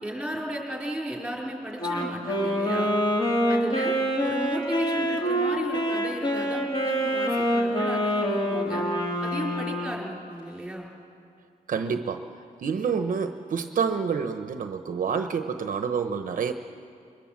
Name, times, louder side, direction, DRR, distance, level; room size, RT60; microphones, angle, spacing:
voice 1, 0.0-2.9 3.5-3.9 4.2-8.8 9.2-10.9, right 1 dB, 5° right, -2 dB, 4.4 m, -35 dB
Wind instrument woodwind instrument, 1.8-10.1, equal, 30° left, 3.0 m, -26 dB
voice 2, 11.7-12.2 12.6-16.5, right 6 dB, 60° right, 8 dB, 0.9 m, -28 dB
26.0 x 23.0 x 7.4 m, 2.4 s
wide cardioid pair, 165°, 15 cm